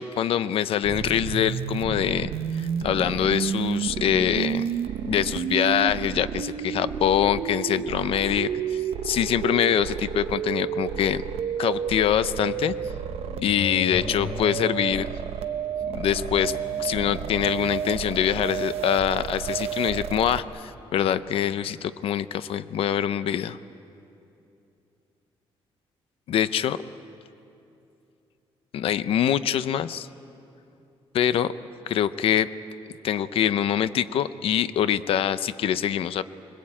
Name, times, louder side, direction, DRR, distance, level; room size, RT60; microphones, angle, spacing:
voice 1, 0.0-2.3 2.5-4.7 5.1-11.2 11.6-12.7 13.4-15.1 15.9-16.5 16.8-23.6 26.3-26.8 28.7-30.1 31.1-31.5 31.9-32.5 33.0-36.2, left 10 dB, 70° left, 14 dB, 0.7 m, -24 dB
sound 1, 0.8-20.4, right 9 dB, 80° right, 1.0 m, -31 dB
sound 2, 4.7-21.8, left 2 dB, 50° left, 4.6 m, -43 dB
25.5 x 21.0 x 8.8 m, 2.7 s
cardioid pair, 145°, 10 cm